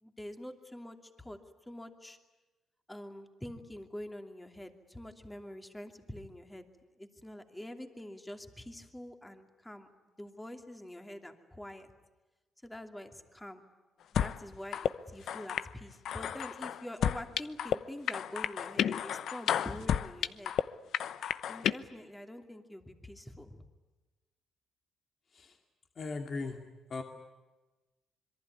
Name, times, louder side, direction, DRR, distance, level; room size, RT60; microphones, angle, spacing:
voice 1, 0.0-1.4 1.7-2.2 2.9-6.6 7.0-9.9 10.2-11.9 12.6-13.6 14.1-20.5 21.5-23.6, left 1 dB, 10° left, 6 dB, 2.8 m, -45 dB
sound 1, 14.2-14.4 14.7-14.9 15.3-15.7 16.1-17.8 18.1-20.6 20.9-21.7, left 9 dB, 70° left, 0.8 m, -31 dB
voice 2, 26.0-26.6 26.9-27.0, left 3 dB, 45° left, 4 dB, 2.5 m, -38 dB
26.5 x 23.0 x 9.6 m, 1.1 s
cardioid pair, 90°, 0 cm